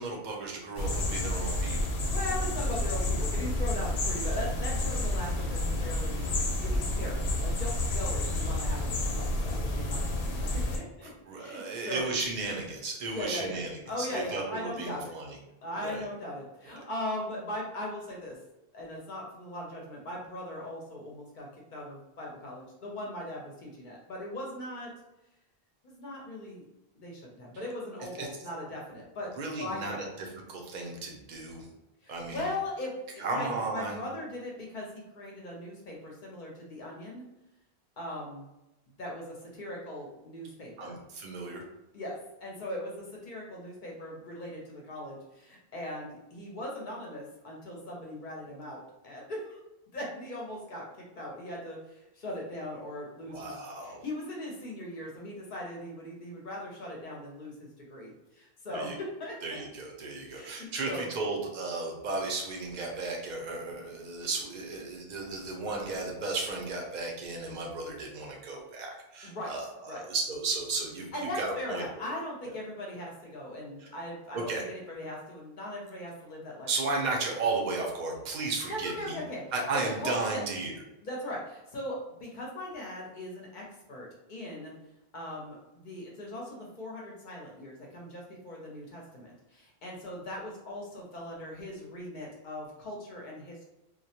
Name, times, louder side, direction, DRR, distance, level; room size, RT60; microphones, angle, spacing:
voice 1, 0.0-1.9 11.0-15.4 15.8-16.0 28.2-28.3 29.4-31.7 32.1-32.5 33.2-34.0 40.8-41.6 53.3-54.0 58.7-58.9 59.4-72.0 73.8-73.9 74.3-74.6 76.7-79.2 79.5-80.8, right 3 dB, 55° right, 0 dB, 0.6 m, -34 dB
sound 1, 0.8-10.8, left 1 dB, 85° left, 0.8 m, -30 dB
voice 2, 2.0-12.1 13.1-15.1 15.6-18.4 18.7-24.9 25.8-26.6 26.9-29.3 29.6-30.1 32.0-37.2 38.0-38.4 39.0-41.0 41.9-49.6 49.9-59.6 60.3-61.1 69.2-69.5 69.9-70.1 71.1-76.9 78.7-79.4 80.0-80.4 81.0-84.7 85.1-93.7, left 1 dB, 55° left, -2 dB, 0.7 m, -39 dB
2.2 x 2.0 x 2.7 m, 0.93 s
omnidirectional pair, 1.1 m